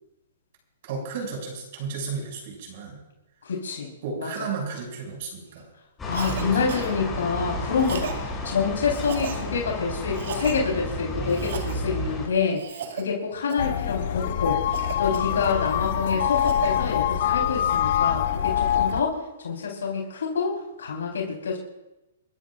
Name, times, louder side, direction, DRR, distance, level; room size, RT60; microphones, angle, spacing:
voice 1, 0.8-3.0 4.0-5.7 6.4-6.6, right 5 dB, 50° right, 0 dB, 6.9 m, -33 dB
voice 2, 3.4-3.9 4.2-4.3 6.1-12.6 12.9-14.6 15.0-21.6, left 5 dB, 80° left, -1 dB, 4.4 m, -27 dB
sound 1, 6.0-12.3, left 1 dB, 15° left, 6.9 m, -32 dB
Cough, 6.1-6.4 6.7-6.9 7.8-8.2 8.9-9.4 10.1-10.6 11.3-11.8 12.5-13.0 13.5-13.8 14.7-15.7 16.1-16.7, right 6 dB, 70° right, 2.6 m, -35 dB
sound 2, 13.6-19.0, left 10 dB, 55° left, 0.9 m, -24 dB
29.5 x 13.5 x 2.6 m, 0.97 s
hypercardioid pair, 140°, 0 cm